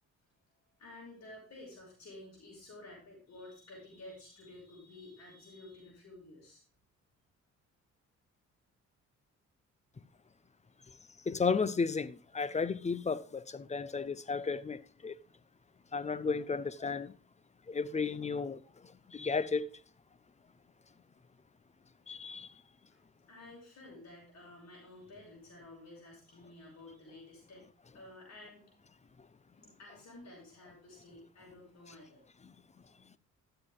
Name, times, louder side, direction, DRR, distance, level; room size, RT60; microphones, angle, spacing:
voice 1, 0.8-6.6 22.9-23.0 23.3-28.7 29.6-32.2, left 2 dB, 60° left, 5.8 m, -52 dB
voice 2, 11.3-15.1 15.9-17.1 17.7-18.6 19.1-19.7 22.1-22.5, left 5 dB, 25° left, 0.7 m, -33 dB
12.5 x 7.9 x 3.6 m
cardioid pair, 90°, 30 cm